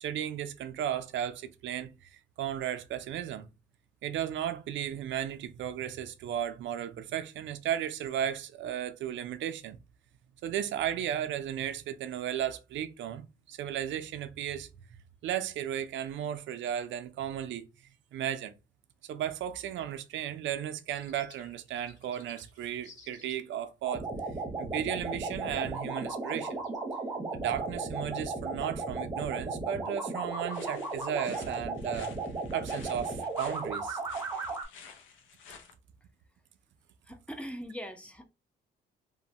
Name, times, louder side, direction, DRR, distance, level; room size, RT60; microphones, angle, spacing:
voice 1, 0.0-3.5 4.0-9.8 10.4-14.7 15.2-17.6 18.1-18.5 19.0-24.1 24.6-26.6 27.3-32.1 32.5-34.0, right 10 dB, 70° right, 0.4 m, -35 dB
sound 1, 20.5-23.4 26.3-26.8, left 4 dB, 35° left, 1.7 m, -57 dB
sound 2, 23.8-34.6, right 3 dB, 15° right, 0.8 m, -35 dB
sound 3, 30.5-35.7, left 6 dB, 75° left, 0.5 m, -52 dB
voice 2, 37.1-38.2, equal, 5° left, 0.4 m, -41 dB
2.9 x 2.1 x 2.7 m
cardioid pair, 90°, 20 cm